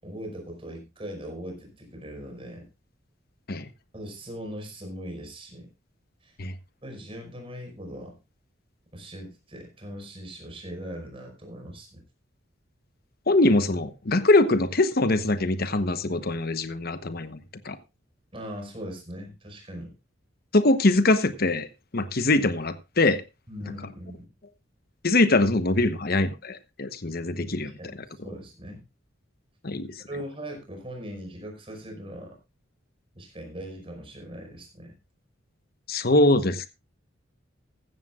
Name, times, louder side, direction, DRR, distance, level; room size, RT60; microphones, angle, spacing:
voice 1, 0.0-2.7 3.9-5.7 6.2-6.4 6.8-8.2 8.9-12.0 18.3-19.9 23.5-24.3 27.6-28.8 30.1-32.4 33.1-35.0, equal, 30° right, 5.4 m, -40 dB
voice 2, 13.3-17.4 17.6-17.8 20.5-21.7 21.9-23.2 25.0-27.7 29.6-29.9 35.9-36.7, left 2 dB, 50° left, 1.0 m, -22 dB
15.0 x 14.5 x 2.4 m
head